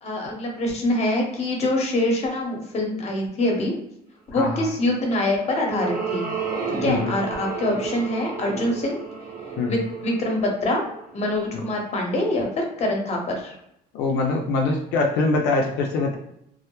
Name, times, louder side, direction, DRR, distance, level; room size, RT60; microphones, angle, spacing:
voice 1, 0.0-3.7 4.3-6.3 6.8-9.0 9.7-10.8 11.1-13.5, left 1 dB, 40° left, 1 dB, 0.8 m, -24 dB
sound 1, 5.0-11.6, right 5 dB, 60° right, 0.8 m, -32 dB
voice 2, 13.9-16.2, left 3 dB, 85° left, 1 dB, 0.4 m, -23 dB
2.1 x 2.0 x 2.9 m, 0.78 s
cardioid pair, 110°, 17 cm